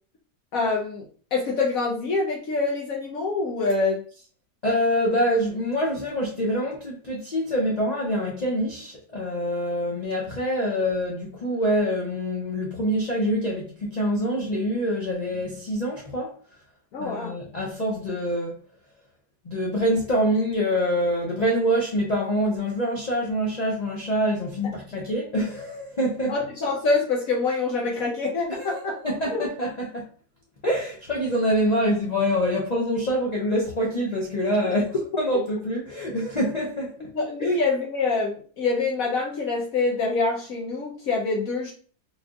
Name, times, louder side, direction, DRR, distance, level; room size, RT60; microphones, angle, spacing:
voice 1, 0.5-1.0 1.3-4.0 16.9-17.3 26.3-29.0 29.3-29.4 37.1-41.7, left 3 dB, 65° left, 1.1 m, -25 dB
voice 2, 4.6-16.3 17.0-18.5 19.4-26.3 28.6-30.0 30.6-36.9 37.4-37.5, equal, 45° left, 0.5 m, -25 dB
4.2 x 3.2 x 2.3 m
omnidirectional pair, 1.7 m